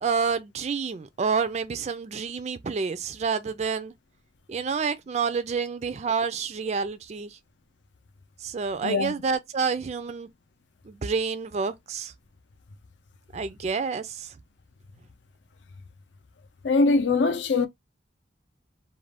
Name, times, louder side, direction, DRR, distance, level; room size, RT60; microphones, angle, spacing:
voice 1, 0.0-3.9 4.5-7.4 8.4-10.3 10.9-12.1 13.3-14.3, right 5 dB, 35° right, 0.3 m, -28 dB
voice 2, 8.8-9.1 16.6-17.7, left 3 dB, 75° left, 0.5 m, -22 dB
2.5 x 2.2 x 3.2 m
head